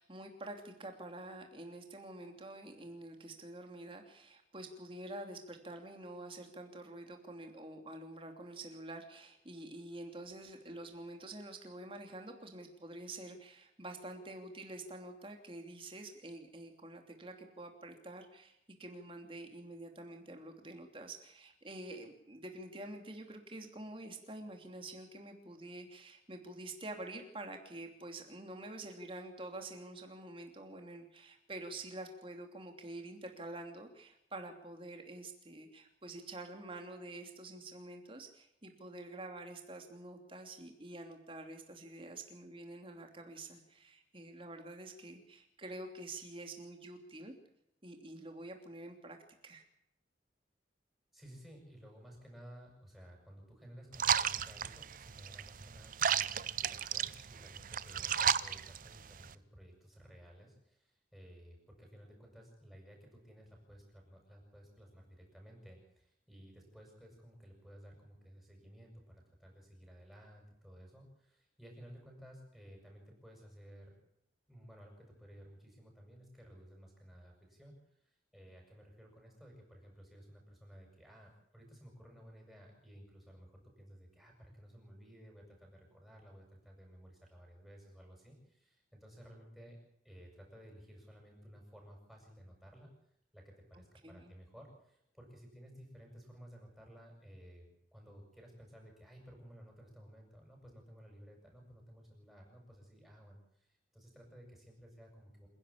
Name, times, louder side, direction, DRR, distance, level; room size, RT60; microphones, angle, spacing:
voice 1, 0.0-47.3 47.8-49.2 49.4-49.6 93.7-94.3, right 2 dB, 30° right, 4 dB, 2.9 m, -47 dB
voice 2, 51.1-74.0 74.5-89.8 90.0-92.9 93.3-97.7 97.9-105.5, equal, ahead, 0 dB, 7.0 m, -56 dB
sound 1, 53.9-59.3, right 8 dB, 45° right, 0.7 m, -34 dB
27.5 x 11.0 x 8.6 m, 0.76 s
head